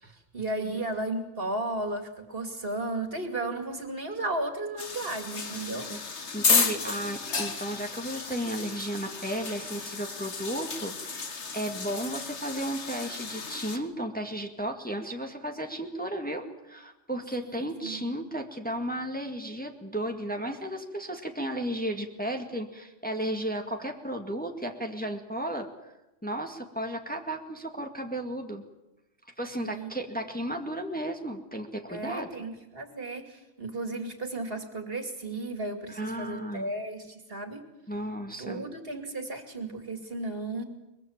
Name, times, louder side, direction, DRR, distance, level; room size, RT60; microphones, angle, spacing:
voice 1, 0.0-5.9 6.6-7.1 7.4-7.5 17.4-18.1 29.6-29.9 31.9-37.6 38.4-40.6, right 2 dB, 50° right, 6 dB, 2.9 m, -34 dB
sound 1, 4.8-13.8, left 4 dB, 65° left, 2.0 m, -32 dB
voice 2, 5.5-6.0 6.3-25.9 26.2-28.6 29.4-32.3 35.9-36.7 37.9-38.7, right 1 dB, 5° left, 3 dB, 2.0 m, -34 dB
23.0 x 22.0 x 7.4 m, 0.97 s
omnidirectional pair, 1.2 m